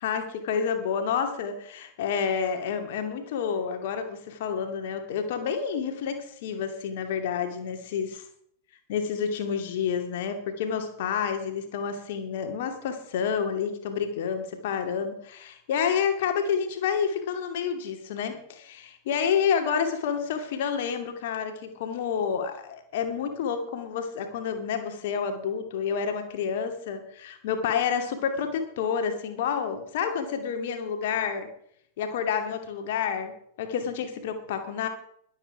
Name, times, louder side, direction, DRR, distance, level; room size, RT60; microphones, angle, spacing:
voice 1, 0.0-8.1 8.9-31.5 32.0-34.9, left 7 dB, 55° left, 6 dB, 2.4 m, -29 dB
21.5 x 8.3 x 4.8 m, 0.67 s
figure-of-eight pair, 90°, 0 cm